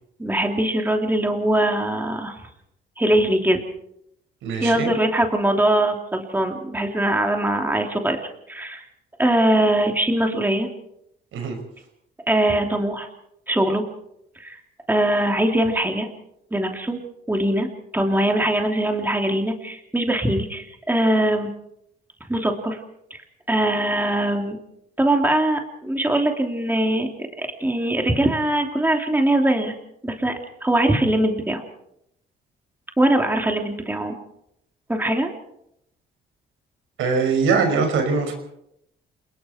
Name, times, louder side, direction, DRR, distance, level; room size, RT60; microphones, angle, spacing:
voice 1, 0.2-2.4 3.0-3.6 4.6-8.8 9.2-10.7 12.3-13.1 13.5-13.8 14.4-14.6 14.9-16.1 16.5-17.0 17.3-17.7 17.9-21.5 22.3-22.8 23.1-23.2 23.5-24.6 25.0-27.1 27.4-29.7 30.0-31.6 33.0-34.2 34.9-35.3, right 1 dB, 10° right, 3 dB, 3.1 m, -21 dB
voice 2, 4.4-4.9 11.3-11.6 37.0-38.3, right 4 dB, 85° right, 5 dB, 5.6 m, -22 dB
28.5 x 20.5 x 4.5 m, 0.78 s
cardioid pair, 90°, 20 cm